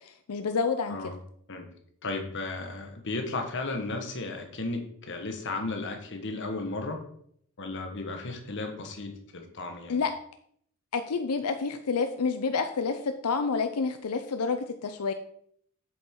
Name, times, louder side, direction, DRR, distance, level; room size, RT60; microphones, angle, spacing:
voice 1, 0.0-1.0 9.9-10.1 10.9-15.1, left 4 dB, 90° left, 8 dB, 0.6 m, -29 dB
voice 2, 2.0-7.0 7.6-10.0, left 2 dB, 55° left, 4 dB, 1.4 m, -34 dB
8.3 x 7.3 x 3.8 m, 0.66 s
head